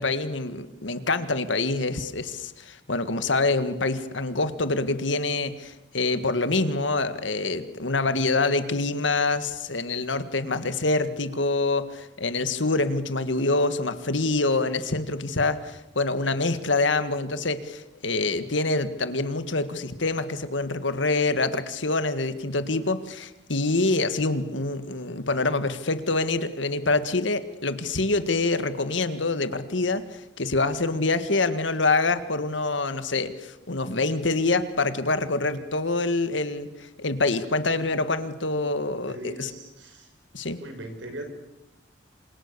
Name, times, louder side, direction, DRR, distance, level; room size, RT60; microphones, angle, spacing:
voice 1, 0.0-39.5 40.3-40.6, left 3 dB, 85° left, 11 dB, 1.9 m, -26 dB
voice 2, 39.1-40.1 40.6-41.2, right 1 dB, 85° right, 6 dB, 5.9 m, -39 dB
28.0 x 26.5 x 6.9 m, 0.93 s
head